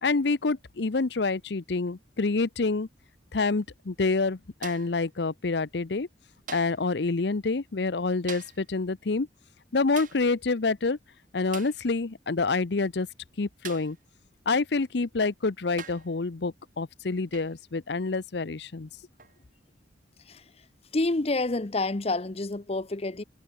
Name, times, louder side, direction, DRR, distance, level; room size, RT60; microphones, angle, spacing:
voice 1, 0.0-2.9 3.3-6.1 6.5-9.3 9.7-11.0 11.3-13.1 13.4-14.0 14.5-18.9, left 3 dB, 65° left, 0.7 m, -27 dB
sound 1, 4.6-5.0 6.5-6.9 8.3-8.7 10.0-10.3 11.5-11.8 13.6-14.0 15.1-15.2 15.8-16.1 17.3-17.6 19.2-19.4, right 7 dB, 45° right, 2.4 m, -43 dB
voice 2, 20.3-20.6 20.9-23.2, left 2 dB, 35° left, 0.7 m, -28 dB
head